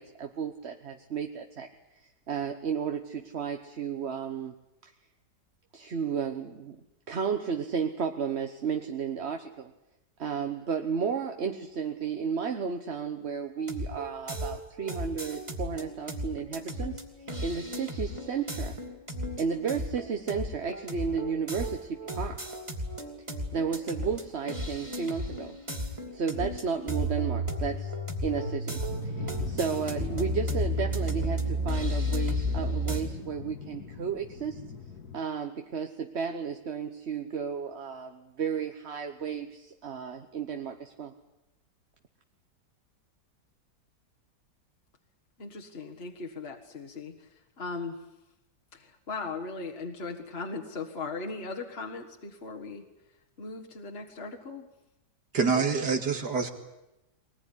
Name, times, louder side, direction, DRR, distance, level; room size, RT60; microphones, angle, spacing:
voice 1, 0.0-1.7 2.0-4.6 4.8-4.9 5.7-6.8 7.1-9.7 10.2-17.0 17.4-18.8 19.4-22.4 23.5-25.6 26.1-27.9 28.2-34.6 35.1-41.1, right 6 dB, 45° right, 5 dB, 1.2 m, -33 dB
sound 1, 13.6-33.0, equal, 15° right, 2.9 m, -33 dB
sound 2, 28.9-35.2, left 6 dB, 65° left, 2.1 m, -41 dB
voice 2, 45.4-47.3 47.6-48.0 48.7-52.8 53.4-54.7, left 3 dB, 35° left, 1 dB, 1.8 m, -38 dB
voice 3, 55.3-56.5, right 5 dB, 70° right, 5 dB, 2.7 m, -26 dB
22.5 x 20.0 x 9.9 m, 0.95 s
omnidirectional pair, 1.8 m